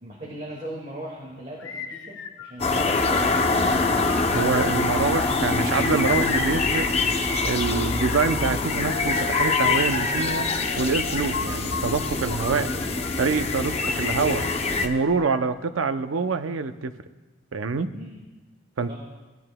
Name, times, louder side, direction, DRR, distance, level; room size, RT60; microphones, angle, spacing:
voice 1, 0.0-3.9 17.9-18.3 18.9-19.0, right 1 dB, 35° right, -4 dB, 1.8 m, -39 dB
sound 1, 1.6-3.2 3.8-5.4 6.0-7.7 8.3-9.5 10.6-13.4 13.8-15.6, left 6 dB, 80° left, 0.6 m, -36 dB
sound 2, 2.6-14.9, left 3 dB, 30° left, 0.6 m, -24 dB
voice 2, 4.3-6.9 7.4-10.5 10.8-12.7 13.2-14.5 14.8-16.9 17.5-17.9 18.8-18.9, right 4 dB, 80° right, 10 dB, 0.5 m, -25 dB
17.5 x 10.5 x 2.2 m, 1.2 s
head